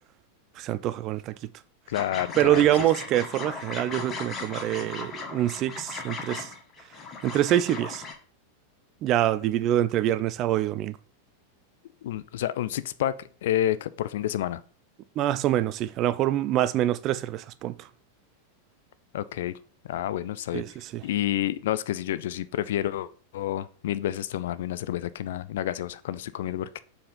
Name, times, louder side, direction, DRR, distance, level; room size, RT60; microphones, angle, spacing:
voice 1, 0.6-1.3 2.4-6.5 7.2-8.0 9.0-11.0 15.2-17.9 20.5-21.0, right 13 dB, 35° right, 0.5 m, -25 dB
voice 2, 1.9-2.7 12.0-13.1 13.4-14.6 19.1-19.5 19.9-20.6 21.0-26.8, left 12 dB, 55° left, 0.5 m, -29 dB
sound 1, 1.9-8.1, left 4 dB, 25° left, 1.6 m, -37 dB
7.5 x 4.4 x 5.4 m
figure-of-eight pair, 90°, 0 cm